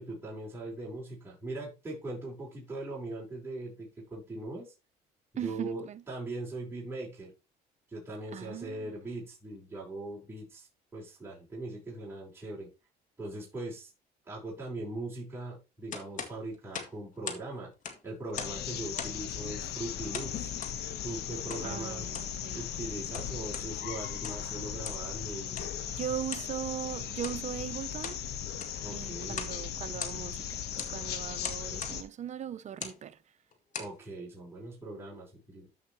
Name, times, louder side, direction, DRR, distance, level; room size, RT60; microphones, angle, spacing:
voice 1, 0.0-4.7 5.3-7.3 7.9-12.7 13.2-13.9 14.3-17.7 18.0-20.5 21.0-22.1 22.5-25.7 28.8-29.4 33.8-35.7, right 2 dB, 15° right, 4.6 m, -40 dB
voice 2, 5.4-6.0 8.3-8.9 21.6-22.6 26.0-28.2 28.9-33.2, right 9 dB, 45° right, 0.7 m, -39 dB
sound 1, 15.9-17.5 17.7-18.6 18.9-19.3 20.1-20.8 21.5-21.7 22.0-22.4 22.9-23.7 24.1-24.5 24.8-25.1 25.5-25.7 26.3-26.5 27.1-27.4 27.8-28.2 28.5-28.8 29.3-29.6 29.9-30.4 30.8-31.0 31.4-32.0 32.7-33.0 33.5-34.0, left 6 dB, 50° left, 1.9 m, -40 dB
sound 2, 18.3-32.0, left 9 dB, 75° left, 1.3 m, -37 dB
13.5 x 5.5 x 3.1 m
cardioid pair, 110°, 17 cm